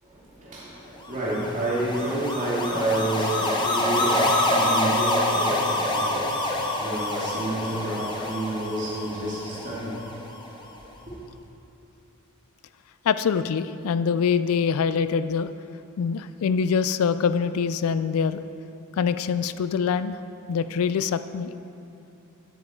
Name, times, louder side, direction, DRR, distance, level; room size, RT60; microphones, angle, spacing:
voice 1, 0.1-10.2, right 1 dB, 35° right, -6 dB, 2.5 m, -29 dB
sound 1, 1.1-10.4, left 1 dB, 20° left, 0.9 m, -26 dB
voice 2, 13.1-15.5 16.0-18.4 19.0-20.1 20.5-21.5, left 6 dB, 70° left, 13 dB, 0.3 m, -24 dB
9.9 x 8.3 x 4.5 m, 2.8 s
head